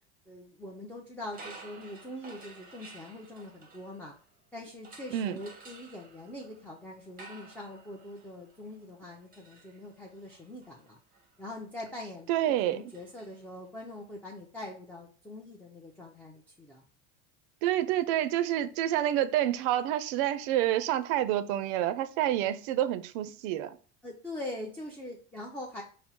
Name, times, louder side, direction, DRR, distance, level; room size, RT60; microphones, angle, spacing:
voice 1, 0.3-4.1 4.5-11.0 11.4-12.3 12.7-16.8 24.0-25.8, left 1 dB, 5° left, 0.4 m, -43 dB
sound 1, 1.3-4.4 4.8-13.9, right 3 dB, 25° right, 0.7 m, -53 dB
voice 2, 12.3-12.8 17.6-23.8, right 12 dB, 65° right, 0.5 m, -28 dB
4.3 x 2.0 x 4.1 m
supercardioid pair, 110°, 35 cm